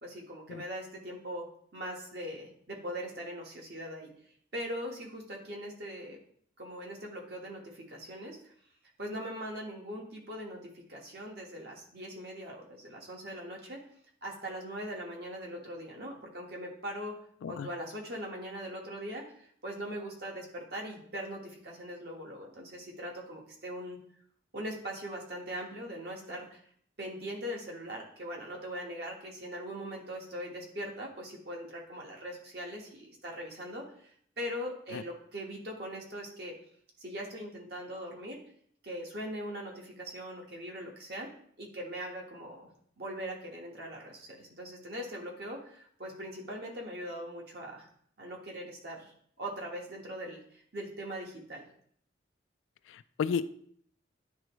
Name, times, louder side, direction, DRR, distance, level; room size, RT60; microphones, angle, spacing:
voice 1, 0.0-1.5 1.7-4.1 4.5-6.2 6.6-8.5 9.0-13.8 14.2-17.2 17.5-24.0 24.5-26.6 27.0-36.5 37.0-38.4 38.8-41.3 41.6-42.7 43.0-47.9 48.2-51.7, equal, 55° right, -1 dB, 1.4 m, -41 dB
voice 2, 52.9-53.5, left 6 dB, 85° left, 13 dB, 0.3 m, -33 dB
10.0 x 3.4 x 3.1 m, 0.62 s
head